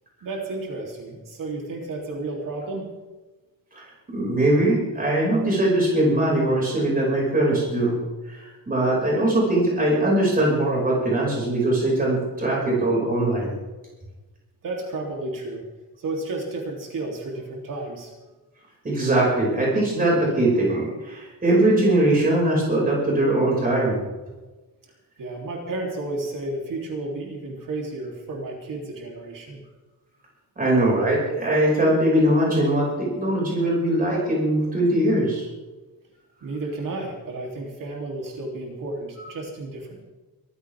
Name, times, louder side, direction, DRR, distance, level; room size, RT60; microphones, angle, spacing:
voice 1, 0.2-2.9 14.6-15.6 16.0-18.1 25.2-29.6 36.4-40.0, right 2 dB, 60° right, -1 dB, 3.4 m, -32 dB
voice 2, 3.7-8.0 8.2-13.5 18.8-24.0 30.6-35.5 39.2-39.3, right 1 dB, 25° right, -4 dB, 5.8 m, -21 dB
23.5 x 15.0 x 3.6 m, 1.2 s
wide cardioid pair, 180°, 36 cm